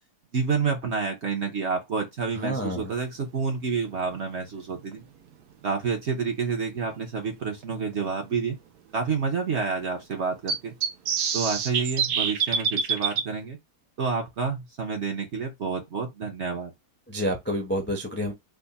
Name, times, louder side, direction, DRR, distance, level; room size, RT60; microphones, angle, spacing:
voice 1, 0.3-5.0 5.6-8.6 8.9-10.7 11.3-13.6 14.0-16.7, right 5 dB, 55° right, 0.9 m, -29 dB
voice 2, 2.4-2.9 17.1-18.3, equal, 15° left, 0.4 m, -29 dB
sound 1, 4.9-5.0 7.0-7.1 7.6-7.7 7.9-8.0 10.5-13.2, right 6 dB, 75° right, 1.2 m, -26 dB
3.5 x 2.1 x 4.0 m
omnidirectional pair, 1.7 m